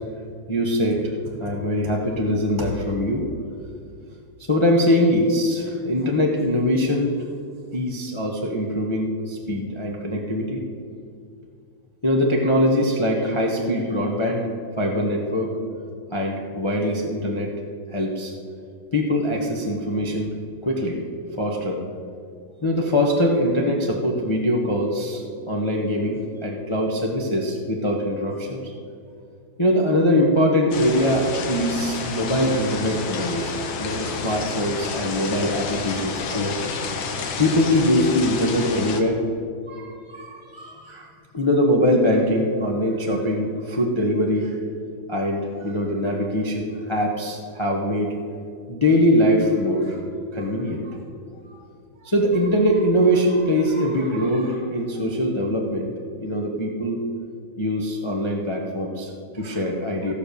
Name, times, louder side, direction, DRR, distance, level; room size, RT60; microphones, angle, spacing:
voice 1, 0.5-1.1 1.4-3.2 4.5-7.1 7.7-10.6 12.0-14.5 14.8-15.6 16.1-17.5 17.9-18.3 18.9-20.3 20.6-21.0 21.4-21.8 22.6-28.6 29.6-36.6 37.4-39.2 39.7-44.5 45.1-48.1 48.7-50.0 50.3-51.0 52.0-55.9 56.2-57.0 57.6-60.1, equal, 45° left, 0 dB, 0.3 m, -22 dB
sound 1, 30.7-39.0, left 5 dB, 65° left, 1.6 m, -30 dB
15.5 x 5.3 x 6.6 m, 2.4 s
omnidirectional pair, 2.3 m